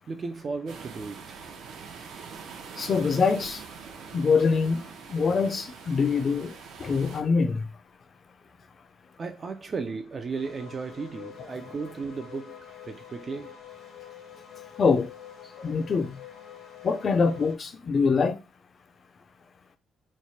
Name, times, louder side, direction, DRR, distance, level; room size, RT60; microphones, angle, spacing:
voice 1, 0.1-1.4 3.9-4.0 9.2-13.6, right 4 dB, 30° right, 0.3 m, -35 dB
sound 1, 0.7-7.2, right 6 dB, 70° right, 0.6 m, -44 dB
voice 2, 2.8-3.6 4.1-7.7 14.8-15.1 15.6-16.2 16.8-18.4, left 5 dB, 35° left, 0.5 m, -24 dB
sound 2, 10.3-17.5, left 9 dB, 80° left, 1.2 m, -46 dB
3.2 x 2.1 x 4.1 m
cardioid pair, 155°, 0 cm